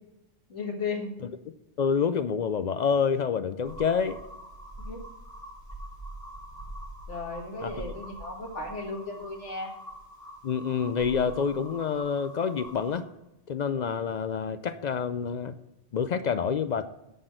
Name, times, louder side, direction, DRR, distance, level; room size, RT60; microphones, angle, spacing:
voice 1, 0.5-1.1 4.8-5.1 7.1-9.8, left 3 dB, 75° left, 1 dB, 2.1 m, -35 dB
voice 2, 1.8-4.2 7.6-7.7 10.4-13.1 13.5-15.5 15.9-16.8, left 6 dB, 60° left, 10 dB, 0.4 m, -27 dB
sound 1, 3.6-13.0, right 1 dB, 15° right, 2.1 m, -44 dB
10.0 x 4.4 x 7.7 m, 0.92 s
omnidirectional pair, 1.2 m